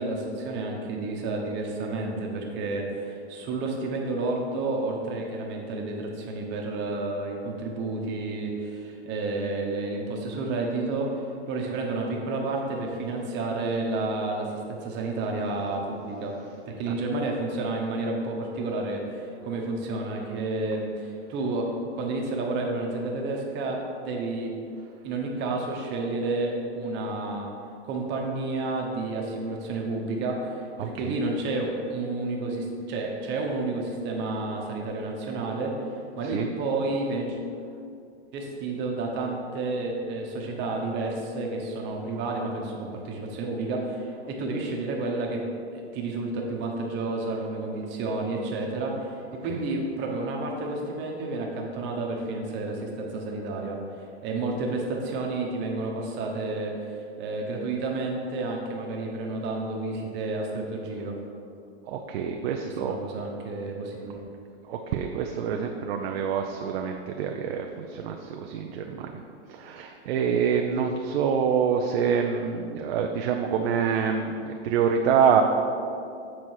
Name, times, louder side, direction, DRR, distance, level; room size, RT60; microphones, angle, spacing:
voice 1, 0.0-16.4 16.7-24.5 25.0-27.5 27.8-35.8 36.2-37.4 38.3-45.4 45.7-53.8 54.2-61.2 62.6-64.2, right 2 dB, 30° right, 0 dB, 1.1 m, -30 dB
voice 2, 30.8-31.1 36.2-36.5 61.9-63.0 64.7-69.1 69.5-75.4, right 7 dB, 60° right, 3 dB, 0.6 m, -26 dB
7.5 x 4.1 x 4.7 m, 2.5 s
hypercardioid pair, 135°, 34 cm